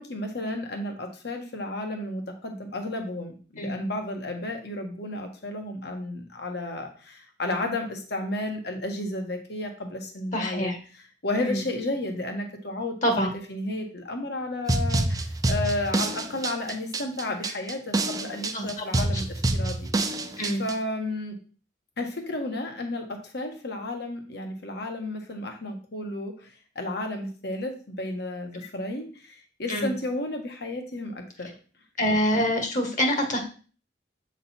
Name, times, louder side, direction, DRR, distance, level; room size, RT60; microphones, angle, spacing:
voice 1, 0.0-10.7 11.2-12.9 13.5-19.9 20.6-21.3 22.0-31.5, left 2 dB, 65° left, 3 dB, 1.5 m, -32 dB
voice 2, 10.3-10.8 11.4-11.6 13.0-13.3 18.5-19.2 20.4-20.7 29.7-30.0 32.0-33.4, equal, 45° left, 4 dB, 1.5 m, -26 dB
sound 1, 14.7-20.7, right 2 dB, 20° right, 0.5 m, -27 dB
8.0 x 4.0 x 4.3 m, 0.39 s
head